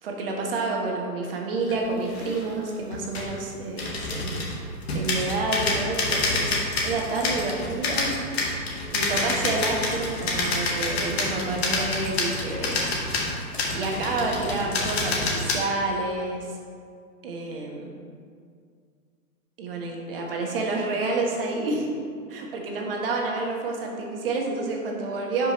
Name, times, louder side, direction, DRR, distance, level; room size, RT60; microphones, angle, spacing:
voice 1, 0.0-4.4 4.7-8.1 8.9-12.8 13.3-13.4 13.7-16.6 17.2-17.9 19.6-21.9 22.3-25.5, right 3 dB, 40° right, 0 dB, 1.2 m, -29 dB
sound 1, 1.7-1.8 2.0-2.5 2.9-3.3 3.8-15.5, left 2 dB, 45° left, 1.3 m, -28 dB
11.0 x 5.2 x 3.0 m, 2.2 s
hypercardioid pair, 165°, 45 cm